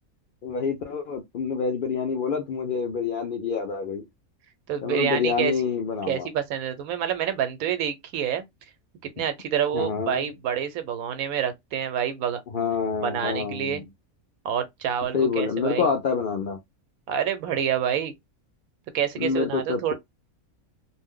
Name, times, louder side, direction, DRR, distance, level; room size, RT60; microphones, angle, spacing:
voice 1, 0.4-4.0 4.8-6.3 9.7-10.2 12.5-13.8 15.1-16.6 19.2-19.9, left 5 dB, 85° left, 0.4 m, -27 dB
voice 2, 4.7-5.5 6.1-8.4 9.2-12.4 13.0-13.8 14.4-15.9 17.1-18.1 18.9-19.9, right 9 dB, 80° right, 1.0 m, -27 dB
2.5 x 2.0 x 3.6 m
omnidirectional pair, 1.5 m